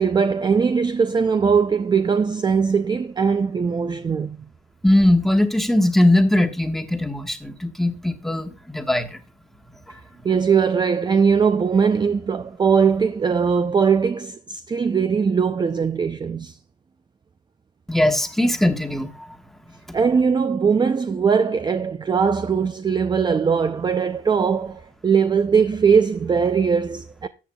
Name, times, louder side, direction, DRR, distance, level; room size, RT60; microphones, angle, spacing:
voice 1, 0.0-4.4 10.2-16.6 19.9-27.3, right 6 dB, 25° right, 0.4 m, -20 dB
voice 2, 4.8-9.2 17.9-19.3 19.9-20.0, left 1 dB, ahead, 1.3 m, -20 dB
13.5 x 8.3 x 2.2 m
cardioid pair, 105°, 17 cm